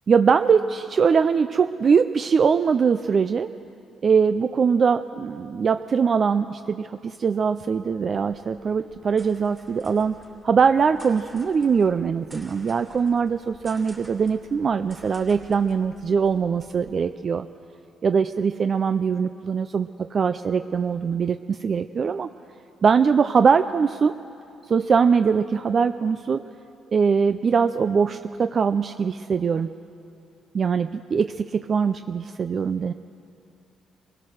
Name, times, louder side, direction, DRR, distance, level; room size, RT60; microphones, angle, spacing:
voice 1, 0.1-3.5 4.0-17.5 18.0-22.3 22.8-24.1 24.7-26.4 26.9-29.7 30.5-32.9, right 6 dB, 45° right, 10 dB, 0.5 m, -22 dB
sound 1, 7.7-16.9, right 1 dB, 15° right, 2.9 m, -51 dB
23.5 x 17.0 x 6.5 m, 2.7 s
cardioid pair, 90°, 0 cm